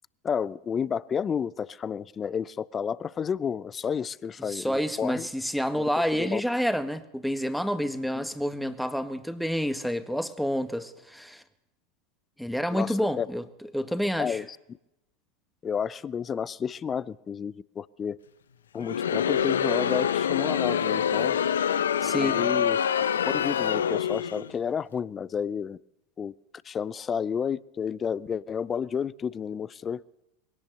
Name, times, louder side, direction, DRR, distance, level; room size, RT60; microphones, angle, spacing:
voice 1, 0.2-5.3 5.8-5.9 6.2-6.4 8.1-8.3 12.7-13.3 14.2-14.6 15.6-18.2 18.7-21.4 22.2-22.8 23.3-25.8 26.2-26.3 26.6-30.0, left 7 dB, 25° left, 0.7 m, -31 dB
voice 2, 4.4-11.4 12.4-13.4 13.7-14.4 22.0-22.4, equal, ahead, 1.6 m, -29 dB
Crowd, 18.8-24.5, left 8 dB, 80° left, 0.8 m, -26 dB
22.0 x 17.5 x 6.8 m
hypercardioid pair, 85°, 0 cm